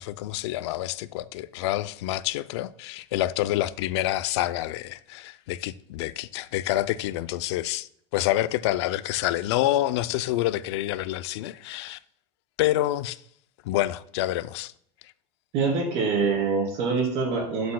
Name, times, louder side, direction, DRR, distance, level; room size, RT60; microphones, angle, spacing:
voice 1, 0.0-12.0 12.6-13.2 13.6-14.7, left 15 dB, 70° left, 0.4 m, -27 dB
voice 2, 15.5-17.7, right 4 dB, 45° right, 2.9 m, -25 dB
8.5 x 7.9 x 2.2 m
supercardioid pair, 170°, 15 cm